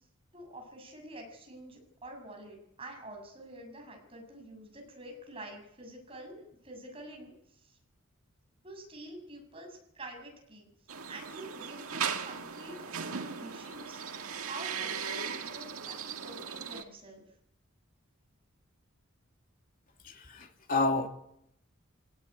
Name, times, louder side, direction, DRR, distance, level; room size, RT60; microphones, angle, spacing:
voice 1, 0.3-7.8 8.6-10.7 11.1-17.2, right 1 dB, 25° right, 2 dB, 7.0 m, -47 dB
sound 1, 10.9-16.8, right 6 dB, 90° right, 2.0 m, -38 dB
voice 2, 20.3-21.1, left 3 dB, 40° left, 4 dB, 2.7 m, -28 dB
24.5 x 18.0 x 10.0 m, 0.76 s
head